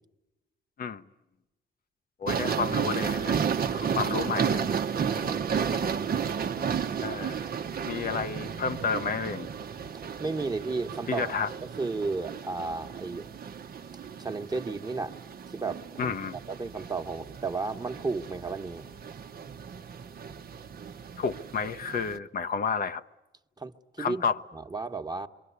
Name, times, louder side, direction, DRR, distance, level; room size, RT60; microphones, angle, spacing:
voice 1, 2.2-3.4 3.7-4.7 5.1-5.9 7.0-7.5 7.8-9.5 11.1-11.5 16.0-16.4 21.2-23.0 24.0-24.4, left 5 dB, 50° left, 0.9 m, -31 dB
sound 1, 2.3-22.2, right 7 dB, 50° right, 1.1 m, -33 dB
voice 2, 10.2-13.3 14.2-15.1 15.5-16.2 16.5-18.8 23.6-24.2 24.5-25.3, right 3 dB, 20° right, 1.4 m, -33 dB
27.0 x 24.0 x 8.3 m
cardioid pair, 90°, 20 cm